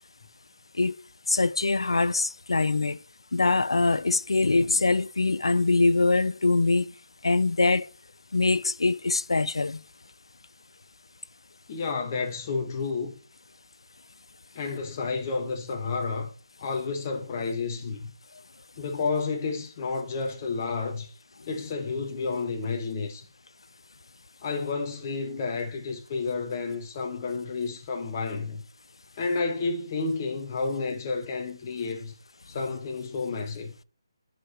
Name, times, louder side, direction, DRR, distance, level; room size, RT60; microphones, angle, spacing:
voice 1, 1.3-3.0 3.3-6.9 7.2-7.9 8.3-9.8 14.6-14.8 32.6-32.7, left 3 dB, 75° left, 0.4 m, -23 dB
voice 2, 11.7-13.1 14.5-16.3 16.6-18.1 18.8-21.1 21.5-23.2 24.4-28.6 29.2-32.1 32.5-33.7, left 4 dB, 30° left, 1.3 m, -30 dB
12.0 x 5.0 x 3.0 m
figure-of-eight pair, 150°, 3 cm